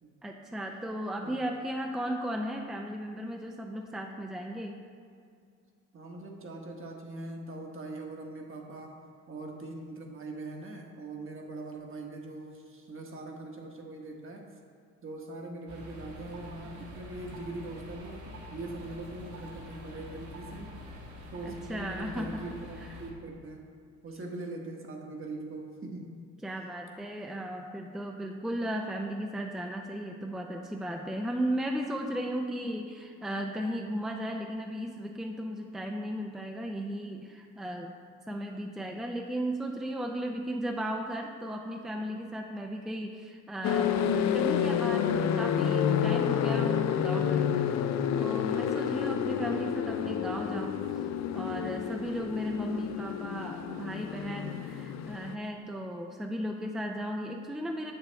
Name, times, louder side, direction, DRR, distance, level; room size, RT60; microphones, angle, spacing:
voice 1, 0.2-4.8 21.4-22.4 22.8-22.9 26.4-38.0 38.3-47.8 48.1-50.8 51.3-57.9, equal, ahead, 2 dB, 0.5 m, -35 dB
voice 2, 5.9-14.5 15.0-18.2 18.5-20.7 21.3-23.7 24.0-26.2, right 2 dB, 45° right, 1 dB, 1.3 m, -41 dB
sound 1, 15.7-23.1, left 1 dB, 75° right, 1.5 m, -45 dB
sound 2, 43.6-55.4, left 8 dB, 65° left, 0.5 m, -29 dB
7.5 x 6.9 x 3.4 m, 2.3 s
cardioid pair, 90°, 30 cm